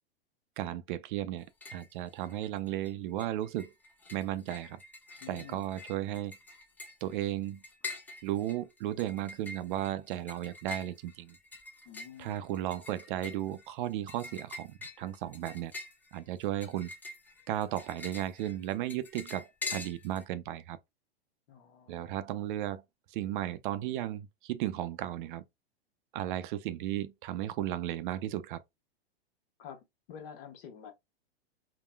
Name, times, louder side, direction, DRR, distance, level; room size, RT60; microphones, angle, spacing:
voice 1, 0.6-1.5 1.7-3.7 4.1-4.8 5.3-6.4 7.0-7.6 8.2-11.4 12.2-15.7 16.1-16.9 17.5-20.8 21.9-22.8 23.1-25.4 26.1-28.6, right 13 dB, 55° right, 0.5 m, -35 dB
sound 1, 1.4-1.9 2.2-2.9 3.2-20.2, left 3 dB, 5° left, 0.3 m, -45 dB
voice 2, 5.2-5.6 11.8-12.4 21.5-22.3 29.6-30.9, left 8 dB, 60° left, 1.1 m, -49 dB
3.7 x 2.1 x 2.3 m
hypercardioid pair, 115°, 31 cm